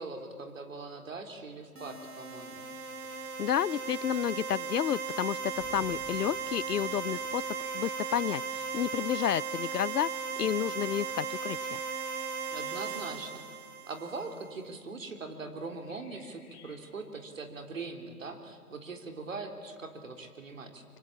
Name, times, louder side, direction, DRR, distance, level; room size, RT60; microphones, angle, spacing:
voice 1, 0.0-2.7 12.5-13.4 13.9-20.8, right 3 dB, 55° right, 5 dB, 3.7 m, -41 dB
sound 1, 1.8-14.5, right 5 dB, 70° right, 2.6 m, -37 dB
voice 2, 3.4-7.4 7.7-8.4 8.7-11.8, left 10 dB, 75° left, 24 dB, 0.6 m, -31 dB
sound 2, 5.5-9.3, left 1 dB, ahead, 2.0 m, -56 dB
sound 3, 7.4-9.1 11.3-13.6 15.8-16.8, left 7 dB, 15° left, 2.3 m, -58 dB
25.0 x 23.5 x 8.5 m, 2.2 s
hypercardioid pair, 165°, 47 cm